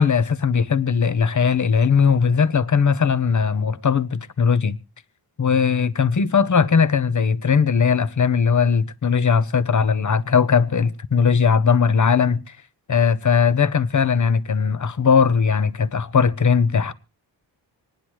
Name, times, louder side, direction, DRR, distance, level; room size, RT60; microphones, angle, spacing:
voice 1, 0.0-4.8 5.4-12.4 12.9-16.9, left 6 dB, 40° left, 0.8 m, -19 dB
26.5 x 10.0 x 3.0 m
wide cardioid pair, 85°, 45 cm